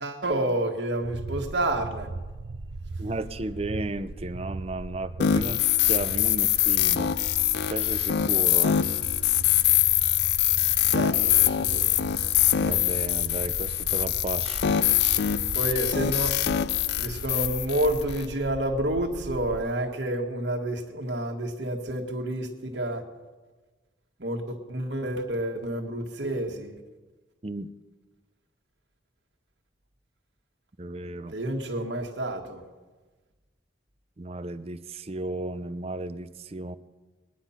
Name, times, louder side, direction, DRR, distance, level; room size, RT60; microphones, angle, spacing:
voice 1, 0.0-2.1 10.9-11.9 15.5-16.3 17.0-23.0 24.2-26.8 31.3-32.6, right 1 dB, 65° right, 2 dB, 1.7 m, -29 dB
sound 1, 1.0-19.6, right 3 dB, 80° right, 0.7 m, -38 dB
voice 2, 3.0-7.1 7.7-8.8 12.6-14.8 27.4-27.7 30.8-31.4 34.2-36.8, right 2 dB, 30° right, 12 dB, 0.6 m, -34 dB
sound 2, 5.2-18.3, left 11 dB, 60° left, 0.4 m, -24 dB
20.5 x 10.0 x 5.7 m, 1.3 s
head